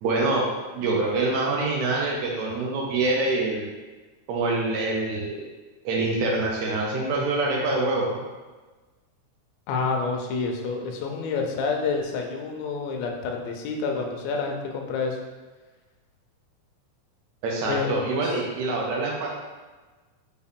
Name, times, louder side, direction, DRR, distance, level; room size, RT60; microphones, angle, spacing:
voice 1, 0.0-3.7 4.3-5.4 5.8-8.2 17.4-19.3, right 2 dB, 80° right, -2 dB, 1.7 m, -25 dB
voice 2, 9.7-15.2 17.7-17.9 18.2-18.3, left 4 dB, 80° left, 2 dB, 1.5 m, -28 dB
5.3 x 2.3 x 3.6 m, 1.3 s
omnidirectional pair, 3.6 m